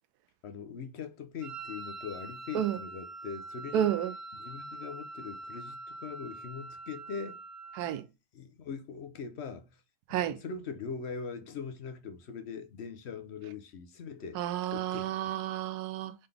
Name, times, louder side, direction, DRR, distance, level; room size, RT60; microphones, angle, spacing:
voice 1, 0.4-3.9 4.3-7.4 8.3-9.8 10.1-14.4 14.7-15.1, left 5 dB, 55° left, 0.8 m, -41 dB
Wind instrument woodwind instrument, 1.4-8.0, right 2 dB, 60° right, 0.5 m, -44 dB
voice 2, 3.7-4.1 7.8-8.0 10.1-10.4 14.3-16.1, right 11 dB, 85° right, 1.1 m, -31 dB
3.8 x 3.8 x 3.3 m
omnidirectional pair, 1.6 m